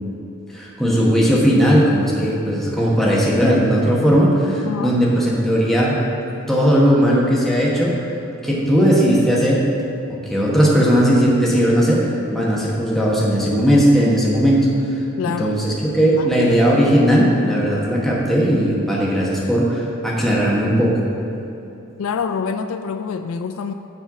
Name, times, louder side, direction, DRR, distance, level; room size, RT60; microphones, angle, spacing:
voice 1, 0.5-6.0 6.5-7.9 8.4-9.7 10.1-21.0, equal, ahead, -5 dB, 1.1 m, -17 dB
voice 2, 4.6-5.0 15.2-15.6 16.2-16.3 22.0-23.7, left 6 dB, 65° left, 8 dB, 0.3 m, -26 dB
7.1 x 4.4 x 5.8 m, 2.9 s
head